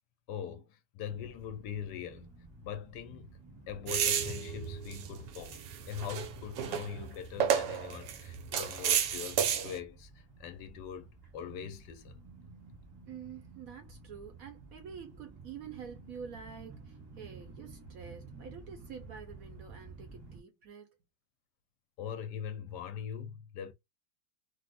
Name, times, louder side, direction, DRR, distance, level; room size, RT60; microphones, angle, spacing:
voice 1, 0.3-2.3 2.6-3.3 3.7-5.6 5.9-12.2 22.0-23.7, left 9 dB, 75° left, 1.1 m, -42 dB
sound 1, 1.1-20.4, right 3 dB, 20° right, 0.8 m, -53 dB
sound 2, 3.9-9.8, right 8 dB, 85° right, 1.2 m, -32 dB
voice 2, 13.1-20.9, right 7 dB, 65° right, 0.9 m, -47 dB
2.9 x 2.0 x 3.9 m
omnidirectional pair, 1.9 m